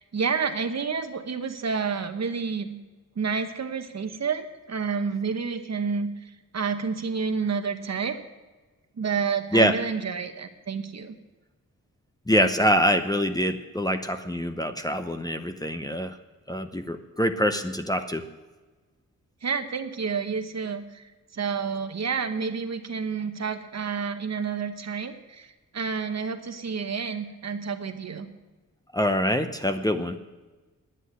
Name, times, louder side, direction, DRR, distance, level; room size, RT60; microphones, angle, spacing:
voice 1, 0.0-2.8 3.2-8.2 9.0-11.2 19.4-28.3, right 5 dB, 50° right, 8 dB, 1.1 m, -29 dB
voice 2, 12.3-16.1 16.5-18.2 28.9-30.2, equal, 10° left, 7 dB, 0.7 m, -24 dB
10.0 x 8.2 x 9.5 m, 1.2 s
wide cardioid pair, 90°, 33 cm